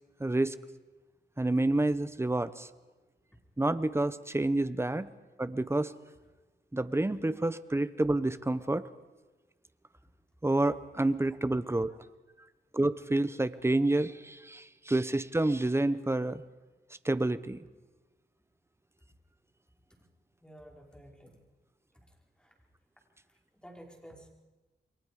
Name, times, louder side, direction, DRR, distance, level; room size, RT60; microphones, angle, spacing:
voice 1, 0.2-0.6 1.4-2.7 3.6-5.1 5.4-5.9 6.7-8.9 10.4-11.9 12.7-16.4 17.0-17.6, right 2 dB, 15° right, 14 dB, 1.0 m, -28 dB
voice 2, 20.4-21.4 22.0-22.5 23.2-24.3, equal, 5° left, 0 dB, 5.1 m, -53 dB
29.0 x 23.0 x 5.1 m, 1.2 s
cardioid pair, 85°, 18 cm